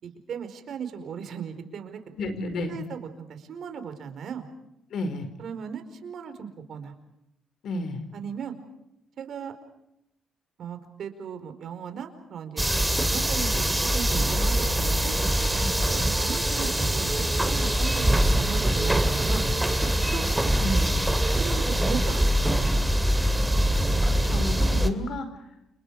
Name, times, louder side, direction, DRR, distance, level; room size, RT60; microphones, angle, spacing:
voice 1, 0.0-2.0 2.7-4.4 5.4-6.9 8.1-8.5 9.2-9.5 10.6-12.7 12.9-15.1 15.9-19.5 20.1-20.6 21.3-22.7, right 7 dB, 65° right, 8 dB, 4.7 m, -37 dB
voice 2, 2.1-2.8 4.9-5.3 7.6-8.0 15.4-15.7 20.6-20.9 24.0-25.3, left 2 dB, 70° left, 9 dB, 5.1 m, -31 dB
sound 1, 12.6-24.9, right 1 dB, 10° right, 2.6 m, -23 dB
30.0 x 28.0 x 4.9 m, 0.83 s
cardioid pair, 90°, 0 cm